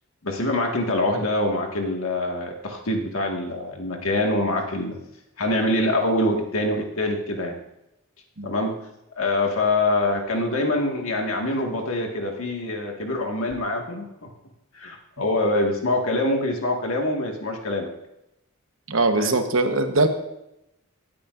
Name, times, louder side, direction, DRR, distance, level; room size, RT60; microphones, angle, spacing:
voice 1, 0.2-5.0 5.4-7.5 8.4-8.8 9.1-14.3 14.7-17.9 19.2-19.4, left 1 dB, 85° left, 2 dB, 1.7 m, -25 dB
voice 2, 18.9-20.1, right 2 dB, 75° right, 6 dB, 1.1 m, -21 dB
18.0 x 8.5 x 2.5 m, 0.86 s
head